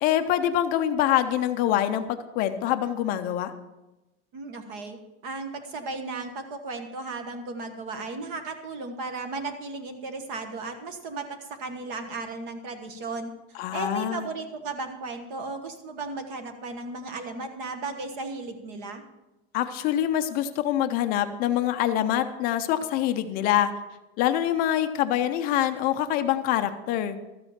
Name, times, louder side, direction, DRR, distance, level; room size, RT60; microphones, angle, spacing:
voice 1, 0.0-3.5 13.6-14.3 19.5-23.7 24.2-27.2, left 11 dB, 25° left, 8 dB, 0.5 m, -25 dB
voice 2, 4.3-5.0 5.2-13.3 13.7-19.0, right 3 dB, 45° right, 6 dB, 1.3 m, -35 dB
13.0 x 8.0 x 5.7 m, 1.0 s
supercardioid pair, 175°, 34 cm